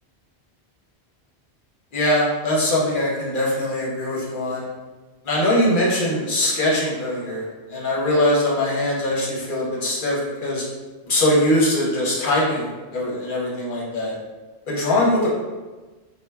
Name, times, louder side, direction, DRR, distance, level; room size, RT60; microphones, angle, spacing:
voice 1, 1.9-4.7 5.2-10.6 11.1-14.1 14.7-15.3, left 1 dB, 55° left, -4 dB, 0.8 m, -22 dB
2.2 x 2.2 x 3.1 m, 1.2 s
omnidirectional pair, 1.1 m